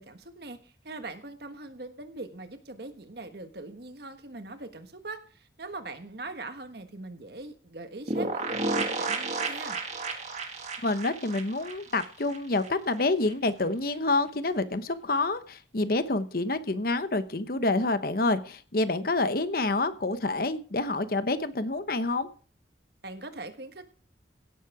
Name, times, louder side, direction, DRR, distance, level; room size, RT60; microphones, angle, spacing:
voice 1, 0.0-9.8 23.0-23.8, right 2 dB, 60° right, 8 dB, 1.4 m, -42 dB
sound 1, 8.1-12.7 13.0-13.1 13.3-13.4, right 3 dB, 40° right, 1.8 m, -32 dB
voice 2, 10.8-22.3, left 2 dB, 50° left, 12 dB, 0.9 m, -28 dB
16.5 x 7.5 x 4.8 m, 0.41 s
head